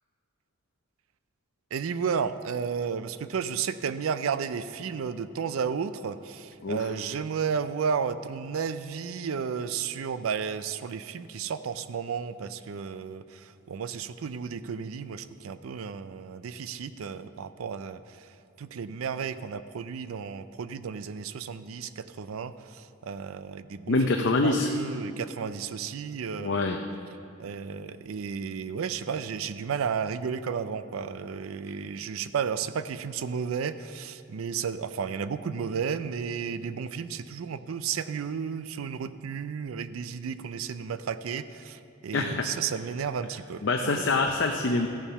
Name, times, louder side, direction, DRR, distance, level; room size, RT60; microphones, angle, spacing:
voice 1, 1.7-18.3 18.6-26.8 27.4-43.6 44.1-44.2, right 6 dB, 80° right, 12 dB, 0.4 m, -33 dB
voice 2, 23.9-24.7 26.4-26.8 42.1-42.4 43.6-44.9, left 3 dB, 60° left, 3 dB, 0.6 m, -25 dB
14.0 x 7.0 x 5.7 m, 2.6 s
head